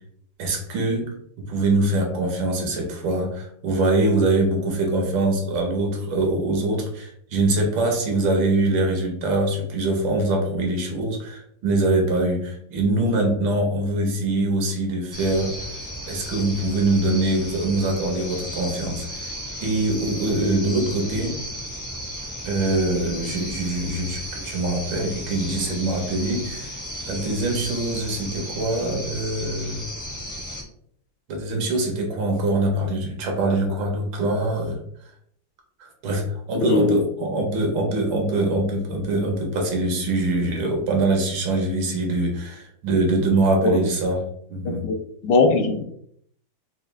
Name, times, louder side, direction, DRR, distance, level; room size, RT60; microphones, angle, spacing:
voice 1, 0.4-15.5 16.1-19.3 19.6-21.4 22.4-26.7 27.1-29.8 31.3-34.8 35.8-44.9, right 2 dB, 75° right, 2 dB, 1.7 m, -23 dB
sound 1, 15.1-30.6, equal, 15° left, 0.5 m, -34 dB
voice 2, 36.5-37.0 44.6-44.9 45.2-45.8, left 3 dB, 70° left, 3 dB, 1.1 m, -20 dB
4.7 x 2.3 x 3.2 m, 0.68 s
omnidirectional pair, 2.1 m